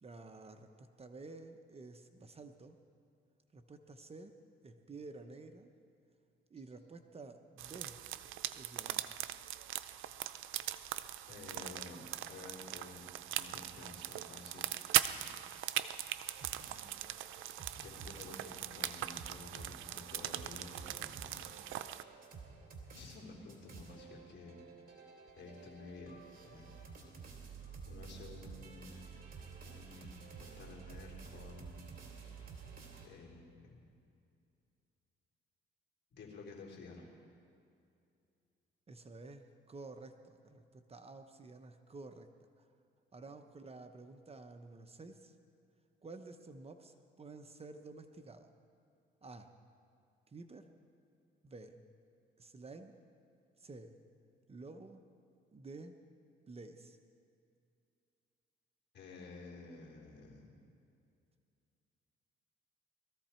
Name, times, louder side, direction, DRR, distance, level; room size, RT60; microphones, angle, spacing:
voice 1, 0.0-2.8 3.5-4.4 4.6-5.7 6.5-8.0 8.5-9.1 38.9-42.3 43.1-45.3 46.0-48.5 49.2-49.5 50.3-50.7 51.4-51.8 52.4-53.0 53.6-54.0 54.5-55.1 55.5-56.0 56.5-57.0, right 3 dB, 30° right, 7 dB, 0.9 m, -51 dB
sound 1, 7.6-22.0, right 13 dB, 85° right, 0.5 m, -40 dB
voice 2, 11.3-15.4 17.8-21.3 22.9-24.6 25.4-26.7 27.9-29.0 29.7-31.9 33.0-33.8 36.1-37.1 58.9-60.5, left 3 dB, 60° left, -2 dB, 3.7 m, -52 dB
sound 2, 16.3-33.1, right 5 dB, 45° right, 2.8 m, -52 dB
21.0 x 14.0 x 4.5 m, 2.5 s
cardioid pair, 90°, 20 cm